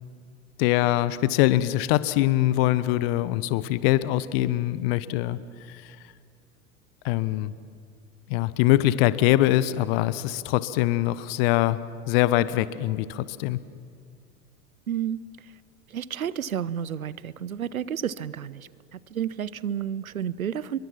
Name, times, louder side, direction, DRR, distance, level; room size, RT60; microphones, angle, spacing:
voice 1, 0.6-5.4 5.7-5.8 7.0-7.5 8.3-11.8 12.1-13.6, left 15 dB, 45° left, 16 dB, 1.0 m, -23 dB
voice 2, 14.9-15.2 15.9-20.8, right 9 dB, 75° right, 20 dB, 0.8 m, -31 dB
28.5 x 23.0 x 6.0 m, 2.1 s
figure-of-eight pair, 80°, 42 cm